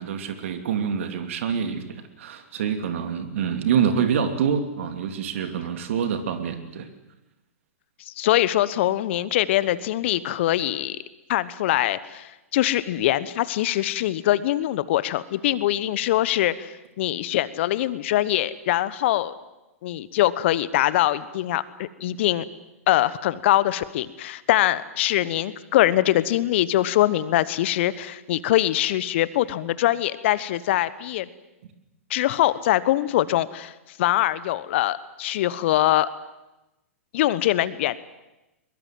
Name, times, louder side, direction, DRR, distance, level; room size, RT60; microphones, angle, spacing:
voice 1, 0.0-6.9, right 7 dB, 65° right, 8 dB, 2.8 m, -26 dB
voice 2, 8.1-11.0 11.3-19.3 19.8-22.4 22.9-31.3 32.1-33.7 34.0-36.1 37.1-38.0, left 14 dB, 55° left, 17 dB, 1.2 m, -23 dB
22.0 x 22.0 x 7.7 m, 0.99 s
hypercardioid pair, 110°, 8 cm